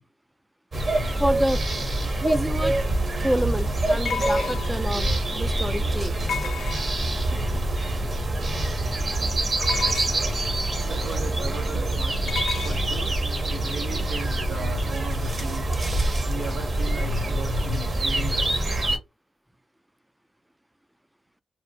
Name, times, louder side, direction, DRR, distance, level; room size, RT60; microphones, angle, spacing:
sound 1, 0.7-19.0, right 1 dB, 50° right, 0.8 m, -25 dB
voice 1, 1.2-1.6 2.2-2.8 3.2-6.1, equal, 10° right, 0.4 m, -27 dB
sound 2, 2.5-2.6 4.1-4.9 6.3-7.2 9.6-10.3 12.3-12.8, left 7 dB, 80° left, 0.3 m, -32 dB
voice 2, 10.8-12.3 12.6-15.7 16.3-18.5, right 4 dB, 85° right, 0.6 m, -37 dB
2.8 x 2.0 x 2.6 m
cardioid pair, 50°, 0 cm